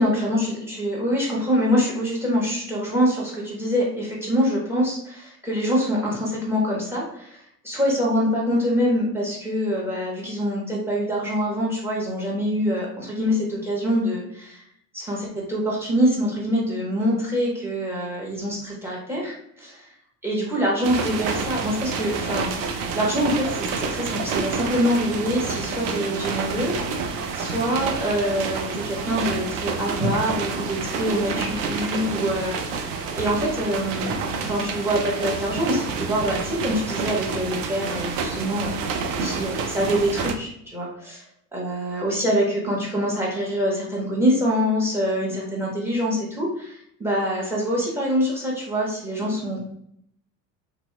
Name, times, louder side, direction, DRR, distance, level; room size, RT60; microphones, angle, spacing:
voice 1, 0.0-14.6 14.9-19.8 20.2-26.7 27.3-41.2 41.5-49.6, equal, 5° right, -3 dB, 1.2 m, -25 dB
sound 1, 20.8-40.3, right 4 dB, 45° right, 0.5 m, -29 dB
3.0 x 2.7 x 2.4 m, 0.69 s
figure-of-eight pair, 65°, 49 cm